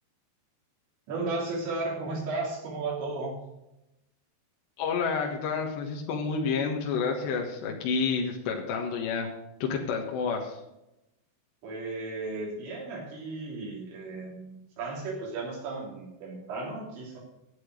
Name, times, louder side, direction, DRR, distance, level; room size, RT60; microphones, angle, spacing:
voice 1, 1.1-3.4 11.6-17.2, right 3 dB, 85° right, -3 dB, 5.5 m, -34 dB
voice 2, 4.8-9.3 9.6-10.6, left 5 dB, 75° left, 0 dB, 3.6 m, -29 dB
11.5 x 8.6 x 6.4 m, 0.89 s
omnidirectional pair, 5.1 m